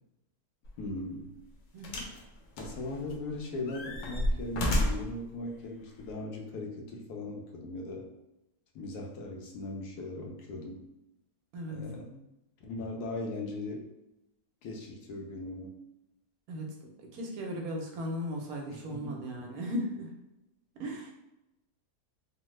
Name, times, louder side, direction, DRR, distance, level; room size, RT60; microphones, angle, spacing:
sound 1, 0.6-0.8 1.8-2.2 2.6-3.3 3.7-5.2 6.0-6.1, left 1 dB, 65° left, 1.0 m, -31 dB
voice 1, 0.8-1.4 2.6-8.1 8.7-10.8 11.7-12.3 12.6-13.9 14.6-15.7 18.7-19.2, left 2 dB, 90° left, 1 dB, 1.2 m, -39 dB
voice 2, 1.7-2.0 11.5-11.8 16.5-20.1 20.7-21.1, equal, 75° right, 1 dB, 1.1 m, -37 dB
3.2 x 2.1 x 3.1 m, 0.91 s
omnidirectional pair, 1.6 m